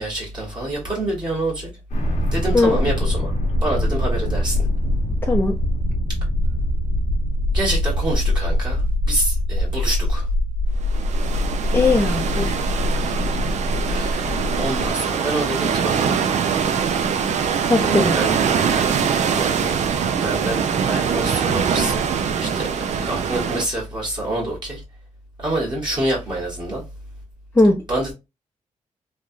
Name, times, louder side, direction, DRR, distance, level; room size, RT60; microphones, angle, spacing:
voice 1, 0.0-1.7 2.3-3.3 3.6-4.7 7.5-10.3 13.0-13.1 13.9-16.2 17.4-17.5 17.8-18.9 19.3-19.8 20.2-22.0 22.4-24.8 25.4-26.8 27.9-28.1, right 1 dB, 35° right, 1.3 m, -27 dB
sound 1, 1.9-14.9, left 1 dB, 80° left, 1.0 m, -23 dB
voice 2, 5.2-5.6 11.7-12.6 17.7-18.2 27.6-27.8, left 2 dB, 15° left, 0.5 m, -18 dB
sound 2, 10.8-23.6, right 7 dB, 65° right, 0.4 m, -23 dB
3.2 x 2.3 x 2.6 m
cardioid pair, 95°, 13 cm